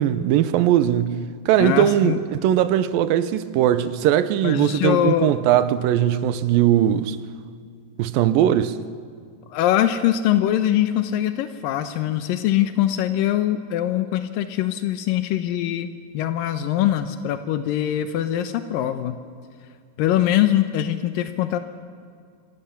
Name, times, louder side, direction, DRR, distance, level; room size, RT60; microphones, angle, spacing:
voice 1, 0.0-7.2 8.0-8.8, right 11 dB, 85° right, 2.6 m, -20 dB
voice 2, 1.6-2.2 4.4-5.3 9.5-19.2 20.0-21.6, left 12 dB, 90° left, 2.6 m, -22 dB
27.0 x 24.5 x 7.0 m
omnidirectional pair, 3.9 m